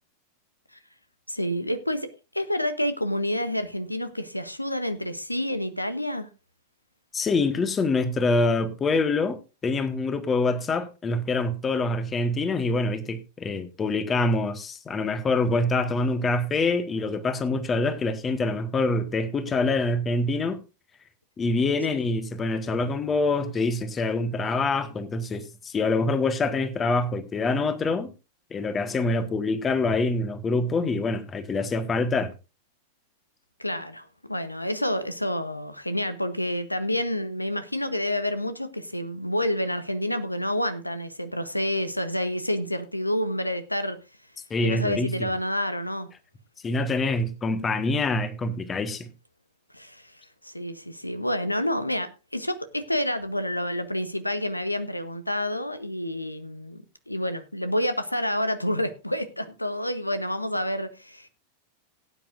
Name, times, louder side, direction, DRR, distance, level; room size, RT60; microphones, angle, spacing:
voice 1, 1.3-6.3 33.6-44.0 44.6-46.1 49.7-50.1 50.4-61.3, left 1 dB, 85° left, 1.0 m, -29 dB
voice 2, 7.1-20.6 21.4-28.1 28.5-32.3 44.5-45.3 46.6-49.1, left 3 dB, 20° left, 1.4 m, -25 dB
18.0 x 9.1 x 2.5 m
figure-of-eight pair, 90°, 0 cm